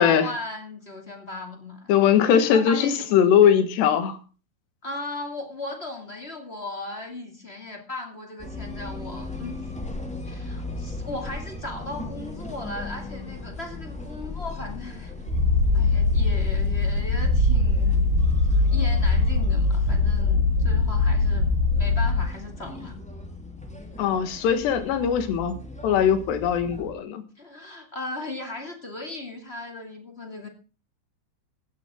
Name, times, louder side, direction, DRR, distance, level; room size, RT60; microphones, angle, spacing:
voice 1, 0.0-1.9 2.5-3.2 4.8-9.7 10.2-15.1 15.7-18.2 18.5-21.5 21.8-23.0 27.4-30.5, left 2 dB, 20° left, 1.8 m, -37 dB
voice 2, 1.9-4.2 24.0-25.6 25.8-27.2, left 8 dB, 80° left, 3.8 m, -20 dB
sound 1, 8.4-26.9, left 2 dB, 5° left, 0.7 m, -38 dB
Purr, 15.3-22.3, left 3 dB, 65° right, 6.2 m, -21 dB
16.0 x 13.5 x 3.7 m
omnidirectional pair, 4.8 m